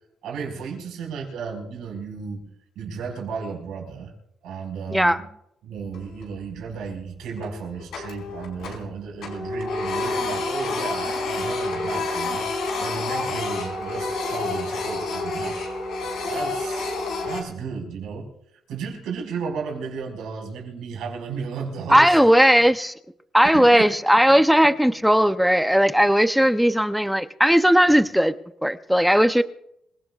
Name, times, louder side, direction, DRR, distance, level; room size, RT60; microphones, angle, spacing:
voice 1, 0.2-4.1 4.4-5.3 5.6-15.6 16.2-16.9 17.2-18.3 18.7-22.2 23.5-23.9 24.1-24.4, right 5 dB, 85° right, 5.3 m, -34 dB
Printer, 5.8-6.4 6.8-6.9 7.4-8.9 9.2-17.4, left 3 dB, 80° left, 5.1 m, -28 dB
voice 2, 21.9-22.9 23.3-28.3 28.6-29.4, equal, ahead, 0.7 m, -17 dB
26.5 x 17.5 x 2.5 m
cardioid pair, 90°, 0 cm